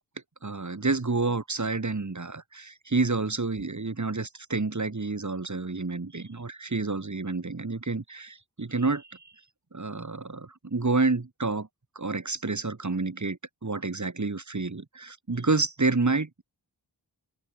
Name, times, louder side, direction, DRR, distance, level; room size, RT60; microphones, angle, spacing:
voice 1, 0.4-9.2 9.7-11.7 12.0-16.4, right 3 dB, 40° right, 5.8 m, -29 dB
open air
cardioid pair, 55°, 43 cm